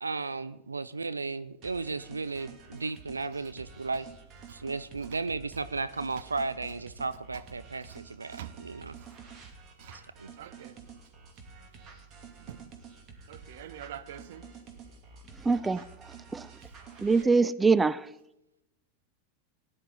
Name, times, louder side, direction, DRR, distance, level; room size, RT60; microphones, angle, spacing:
voice 1, 0.0-4.1 4.5-8.9 9.9-10.3, right 3 dB, 85° right, 0.4 m, -35 dB
sound 1, 1.6-17.2, right 5 dB, 40° right, 2.5 m, -49 dB
voice 2, 10.4-10.8 12.4-12.6 13.3-14.5 16.6-16.7, right 11 dB, 60° right, 0.8 m, -45 dB
voice 3, 15.4-15.8 16.3-16.5 17.0-18.1, right 4 dB, 15° right, 0.4 m, -23 dB
18.5 x 10.5 x 4.0 m
figure-of-eight pair, 85°, 0 cm